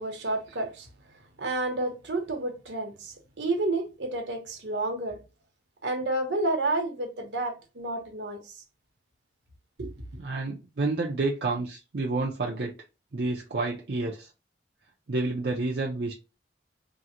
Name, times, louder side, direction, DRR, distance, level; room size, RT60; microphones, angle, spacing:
voice 1, 0.0-5.2 5.8-8.6 9.8-9.9, right 2 dB, 80° right, 0.9 m, -30 dB
voice 2, 10.2-12.7 13.1-14.3 15.1-16.1, right 3 dB, 60° right, 0.5 m, -29 dB
3.7 x 2.0 x 2.8 m
head